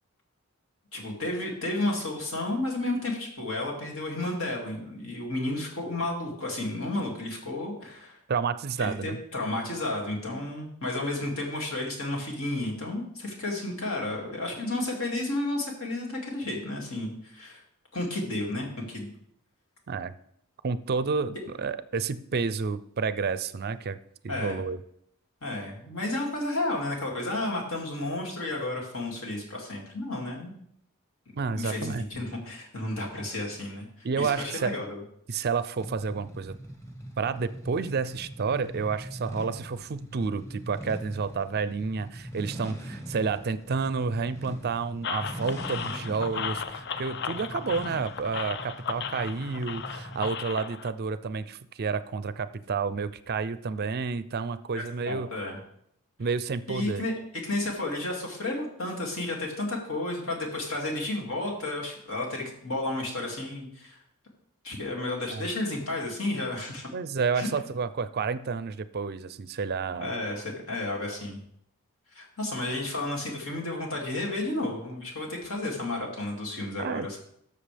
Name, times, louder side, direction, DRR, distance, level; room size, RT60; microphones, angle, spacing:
voice 1, 0.9-8.2 8.8-17.6 17.9-19.1 24.3-24.6 25.4-30.5 31.5-35.0 54.7-55.6 56.7-64.0 64.6-66.9 67.3-67.5 70.0-71.4 72.1-77.2, left 2 dB, 65° left, -1 dB, 2.4 m, -32 dB
voice 2, 8.3-9.2 19.9-20.1 20.6-24.0 24.2-24.8 31.4-32.0 34.0-34.8 35.3-36.6 37.2-55.3 56.2-57.0 65.3-65.4 66.9-70.1 76.8-77.1, right 5 dB, 45° right, 14 dB, 0.4 m, -30 dB
sound 1, 35.8-50.5, right 1 dB, 15° left, 1.3 m, -42 dB
sound 2, 45.0-50.9, left 7 dB, 50° left, 0.5 m, -36 dB
13.0 x 6.7 x 3.4 m, 0.71 s
head